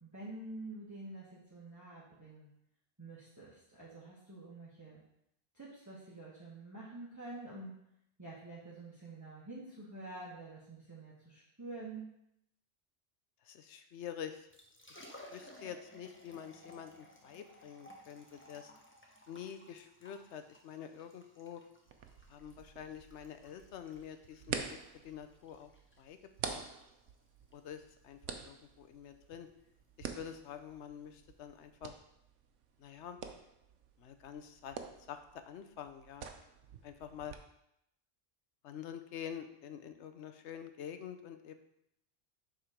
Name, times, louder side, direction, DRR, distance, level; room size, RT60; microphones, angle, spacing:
voice 1, 0.0-2.5 3.0-5.0 5.5-7.7 8.2-12.1, right 2 dB, 15° right, -8 dB, 1.4 m, -48 dB
voice 2, 13.4-14.5 14.9-18.7 19.3-21.6 22.3-24.8 25.0-25.7 26.0-26.2 26.5-26.6 27.5-28.2 28.4-29.5 30.0-32.0 32.8-33.2 34.0-34.8 35.1-36.3 36.8-37.4 38.6-41.5, left 8 dB, 75° left, 8 dB, 0.9 m, -47 dB
Liquid, 14.3-31.7, left 1 dB, 10° left, 0.7 m, -59 dB
sound 1, 21.9-37.4, right 6 dB, 85° right, 1.0 m, -47 dB
7.1 x 3.9 x 5.0 m, 0.78 s
omnidirectional pair, 1.2 m